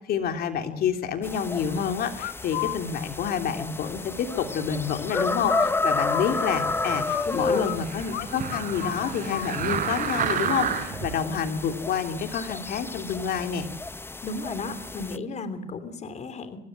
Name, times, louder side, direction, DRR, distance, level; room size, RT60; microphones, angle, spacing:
voice 1, 0.1-13.7, left 7 dB, 65° left, 7 dB, 3.1 m, -28 dB
sound 1, 1.2-15.2, left 3 dB, 15° left, 0.9 m, -32 dB
sound 2, 2.2-2.8 5.1-7.8 8.1-8.3 8.5-9.5, left 16 dB, 85° left, 1.1 m, -32 dB
sound 3, 6.5-11.1 11.7-11.8, right 7 dB, 55° right, 4.3 m, -31 dB
voice 2, 7.2-7.6 14.2-16.6, left 3 dB, 40° left, 12 dB, 3.0 m, -34 dB
25.5 x 19.5 x 7.7 m, 0.75 s
cardioid pair, 110°, 17 cm